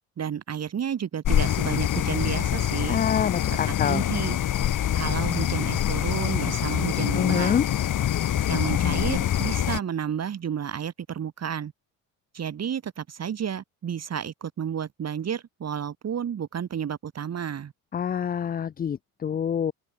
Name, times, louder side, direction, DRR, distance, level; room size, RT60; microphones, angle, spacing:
voice 1, 0.0-3.0 3.7-4.4 5.0-7.5 8.4-11.7 12.3-17.7, right 8 dB, 35° right, 1.5 m, -31 dB
sound 1, 1.2-9.8, left 11 dB, 40° left, 1.5 m, -25 dB
voice 2, 2.9-4.0 7.1-7.7 17.9-19.7, left 8 dB, 20° left, 0.5 m, -26 dB
open air
hypercardioid pair, 65°, 46 cm